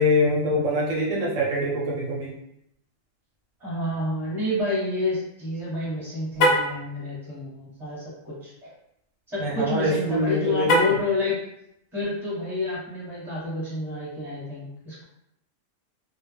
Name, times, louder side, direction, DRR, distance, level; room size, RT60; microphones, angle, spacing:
voice 1, 0.0-2.3 9.4-11.0, left 1 dB, 75° right, -3 dB, 0.9 m, -24 dB
voice 2, 3.6-8.7 9.3-11.4 11.9-15.0, left 2 dB, ahead, -8 dB, 1.0 m, -29 dB
Car, 6.3-6.8 10.6-11.1, equal, 65° left, 0.7 m, -21 dB
2.3 x 2.1 x 3.3 m, 0.78 s
omnidirectional pair, 1.4 m